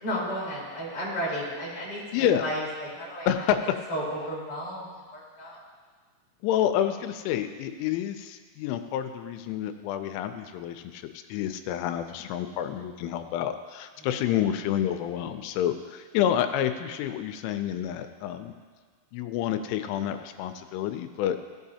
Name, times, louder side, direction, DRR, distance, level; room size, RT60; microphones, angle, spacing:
voice 1, 0.0-3.4 3.9-5.6 14.0-14.2, equal, 30° left, -8 dB, 2.2 m, -33 dB
voice 2, 3.3-3.6 6.4-11.0 11.3-18.5 19.1-21.4, left 10 dB, 85° left, 8 dB, 2.9 m, -28 dB
14.5 x 7.2 x 2.8 m, 1.5 s
omnidirectional pair, 5.6 m